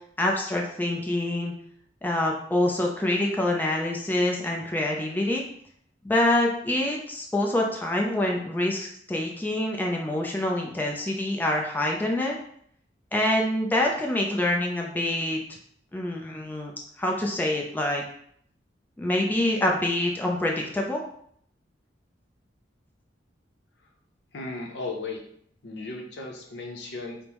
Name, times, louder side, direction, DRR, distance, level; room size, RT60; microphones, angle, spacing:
voice 1, 0.2-1.5 2.0-5.4 6.0-12.4 13.1-15.4 15.9-16.7 17.0-18.0 19.0-21.0, left 1 dB, 10° left, -1 dB, 0.4 m, -26 dB
voice 2, 24.3-25.2 25.6-27.2, left 3 dB, 70° left, 2 dB, 0.7 m, -35 dB
5.1 x 2.0 x 3.0 m, 0.66 s
head